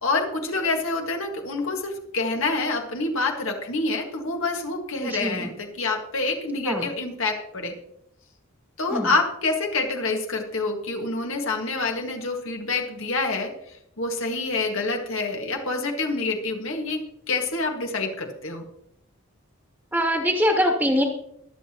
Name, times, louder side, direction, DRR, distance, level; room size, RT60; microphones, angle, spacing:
voice 1, 0.0-7.7 8.8-13.5 14.0-18.6, left 3 dB, 75° left, 2 dB, 1.9 m, -27 dB
voice 2, 5.0-5.5 6.6-6.9 8.9-9.1 19.9-21.0, equal, 10° right, 2 dB, 1.4 m, -23 dB
23.0 x 7.9 x 3.0 m, 0.74 s
head